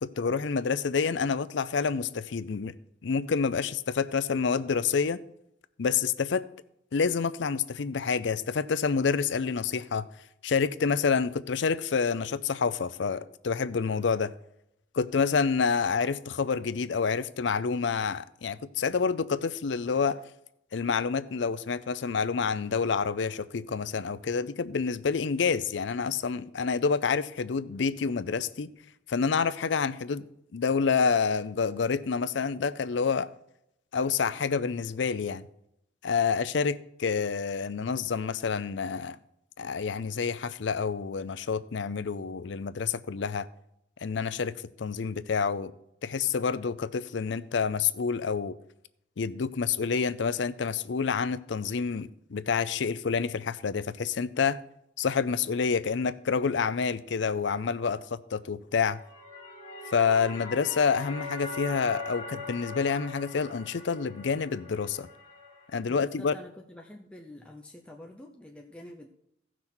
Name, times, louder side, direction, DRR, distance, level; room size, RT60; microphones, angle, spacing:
voice 1, 0.0-2.7 3.0-5.2 5.8-6.4 6.9-10.1 10.4-14.3 14.9-20.2 20.7-28.7 29.1-30.2 30.5-33.3 33.9-35.4 36.0-39.2 39.6-43.5 44.0-45.7 46.0-48.6 49.2-54.6 55.0-59.0 59.9-65.1 65.7-66.3, left 5 dB, 65° left, 0.5 m, -28 dB
sound 1, 58.9-65.8, left 3 dB, 30° left, 1.8 m, -41 dB
voice 2, 65.9-69.1, left 1 dB, 5° left, 0.7 m, -47 dB
15.5 x 6.0 x 4.4 m
head